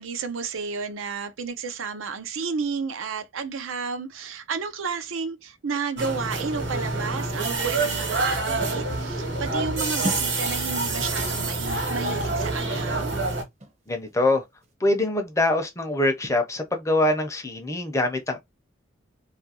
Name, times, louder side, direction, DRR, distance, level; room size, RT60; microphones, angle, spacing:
voice 1, 0.0-13.2, right 5 dB, 85° right, 0.5 m, -32 dB
sound 1, 5.7-14.2 14.6-14.7, right 1 dB, 35° right, 0.6 m, -41 dB
sound 2, 6.0-13.4, right 3 dB, 65° right, 1.1 m, -27 dB
sound 3, 8.5-11.4, left 2 dB, 85° left, 0.7 m, -43 dB
voice 2, 13.9-14.4 14.8-18.4, left 2 dB, 15° left, 0.5 m, -24 dB
2.6 x 2.5 x 2.7 m
head